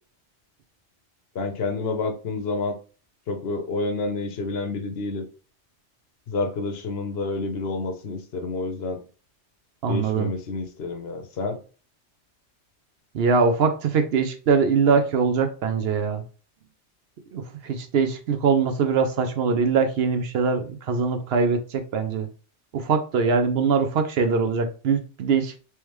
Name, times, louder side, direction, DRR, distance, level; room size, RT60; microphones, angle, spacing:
voice 1, 1.3-2.8 3.3-5.2 6.3-9.0 9.9-11.6, left 3 dB, 60° left, 5 dB, 0.9 m, -29 dB
voice 2, 9.8-10.3 13.1-16.2 17.3-22.3 22.7-25.5, right 5 dB, 65° right, 6 dB, 0.7 m, -22 dB
3.4 x 3.1 x 3.0 m, 0.36 s
omnidirectional pair, 1.2 m